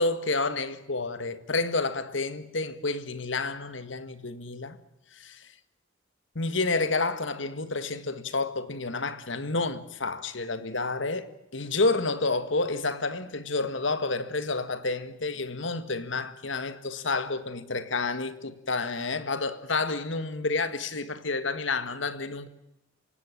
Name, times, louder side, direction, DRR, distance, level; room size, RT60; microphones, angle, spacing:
voice 1, 0.0-4.8 5.1-5.5 6.4-22.5, left 3 dB, 70° left, 1.8 m, -29 dB
27.5 x 17.0 x 8.8 m
head